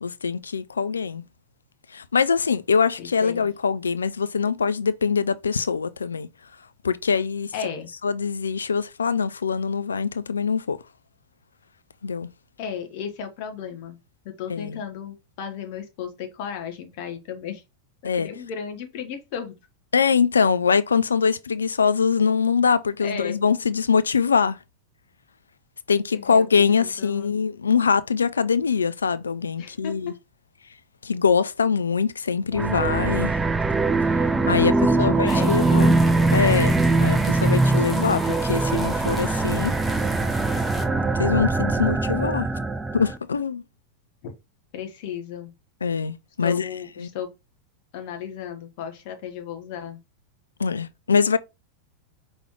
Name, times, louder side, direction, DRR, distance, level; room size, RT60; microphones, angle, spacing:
voice 1, 0.0-1.2 1.9-6.3 6.8-7.5 8.0-10.8 12.0-12.3 14.5-14.8 18.0-18.3 19.9-24.6 25.9-30.1 31.0-33.3 34.5-35.9 36.3-39.7 41.2-42.5 42.9-43.6 45.8-46.7 47.0-47.1 50.6-51.4, left 6 dB, 75° left, 0.3 m, -23 dB
voice 2, 3.0-3.5 7.5-7.9 12.6-14.0 14.2-17.6 18.0-19.6 23.0-23.4 26.1-27.3 29.6-30.1 34.5-35.9 37.4-37.6 44.2-44.3 44.7-45.5 46.4-47.3 47.9-50.0, left 8 dB, 50° left, 1.1 m, -34 dB
sound 1, 32.5-43.2, right 3 dB, 10° right, 0.4 m, -22 dB
sound 2, 35.3-40.8, left 1 dB, 10° left, 1.0 m, -36 dB
5.2 x 3.1 x 3.1 m
figure-of-eight pair, 90°, 0 cm